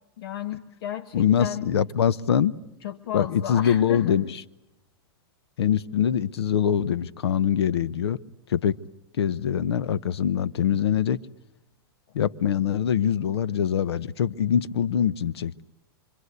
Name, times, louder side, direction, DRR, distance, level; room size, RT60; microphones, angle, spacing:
voice 1, 0.2-1.7 2.8-4.2, left 10 dB, 65° left, 11 dB, 1.3 m, -34 dB
voice 2, 1.1-2.5 3.1-4.4 5.6-8.2 8.5-8.8 9.2-11.2 12.1-15.6, left 8 dB, 85° left, 17 dB, 0.9 m, -23 dB
25.5 x 25.5 x 8.2 m, 0.87 s
hypercardioid pair, 140°, 13 cm